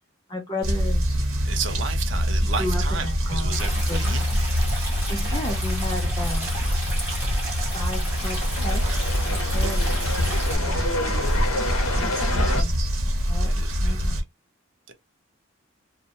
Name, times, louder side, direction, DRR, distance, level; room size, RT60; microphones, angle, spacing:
voice 1, 0.3-1.0 2.6-3.6 3.9-4.0 5.1-6.5 7.7-10.9 12.0-12.7 13.3-14.2, left 1 dB, 20° left, 0.4 m, -34 dB
sound 1, 0.6-14.2, equal, 85° right, 0.9 m, -24 dB
voice 2, 1.4-4.6 13.4-14.2 14.9-15.0, right 6 dB, 60° right, 0.6 m, -34 dB
Stream, 3.5-10.6, right 1 dB, 10° right, 1.1 m, -34 dB
sound 2, 7.6-12.6, left 2 dB, 85° left, 0.6 m, -30 dB
2.7 x 2.1 x 2.6 m
head